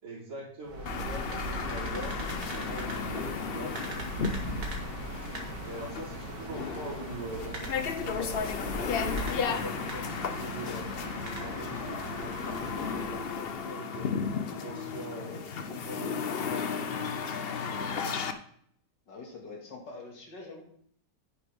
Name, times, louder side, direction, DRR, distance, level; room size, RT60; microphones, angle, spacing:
voice 1, 0.0-3.8 5.7-10.9 11.4-14.1 14.5-18.1, right 1 dB, 80° right, -11 dB, 4.2 m, -43 dB
sound 1, 0.6-13.6, right 1 dB, 60° right, 2.2 m, -39 dB
sound 2, 0.9-18.3, left 6 dB, 60° left, 0.6 m, -34 dB
voice 2, 19.1-20.6, left 3 dB, 85° left, 0 dB, 2.8 m, -44 dB
9.4 x 8.7 x 3.6 m, 0.65 s
omnidirectional pair, 1.9 m